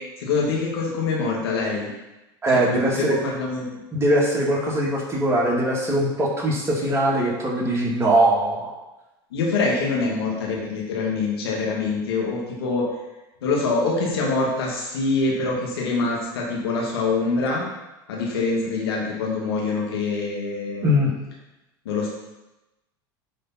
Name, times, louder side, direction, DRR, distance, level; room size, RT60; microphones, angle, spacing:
voice 1, 0.2-1.9 2.5-3.8 9.3-12.8 13.4-17.8 18.1-20.9 21.9-22.1, left 3 dB, 90° left, -2 dB, 2.1 m, -25 dB
voice 2, 2.4-3.2 3.9-8.7 20.8-21.1, right 1 dB, 20° right, -3 dB, 2.2 m, -21 dB
9.9 x 3.9 x 4.3 m, 1.0 s
supercardioid pair, 105°, 13 cm